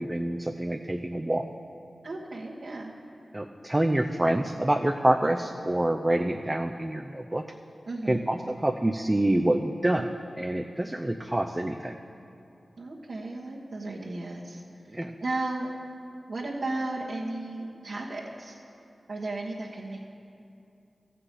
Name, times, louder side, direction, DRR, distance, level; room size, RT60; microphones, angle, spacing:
voice 1, 0.0-1.5 3.3-7.4 8.1-12.0 14.9-15.1, right 1 dB, 20° right, 4 dB, 0.5 m, -27 dB
voice 2, 2.0-2.9 7.9-8.3 12.8-14.6 14.9-15.7 16.3-18.6 19.1-20.0, right 2 dB, 65° right, -6 dB, 1.4 m, -34 dB
13.5 x 5.9 x 8.3 m, 2.6 s
cardioid pair, 45°, 0 cm